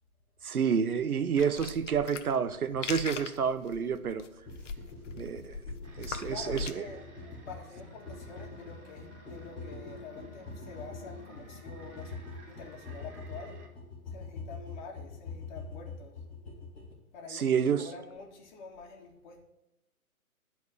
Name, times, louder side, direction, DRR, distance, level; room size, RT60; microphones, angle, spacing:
voice 1, 0.4-4.3 5.1-5.6 6.0-6.8 17.3-17.8, right 7 dB, 80° right, 0.9 m, -29 dB
sound 1, 1.4-6.7, left 5 dB, 55° left, 0.9 m, -40 dB
sound 2, 4.5-16.9, left 3 dB, 5° left, 0.5 m, -44 dB
sound 3, 5.8-13.7, right 1 dB, 55° right, 3.1 m, -54 dB
voice 2, 6.0-7.1 7.5-13.6 14.1-16.2 17.1-19.4, left 4 dB, 30° left, 1.8 m, -47 dB
10.5 x 4.5 x 7.2 m
hypercardioid pair, 145°, 44 cm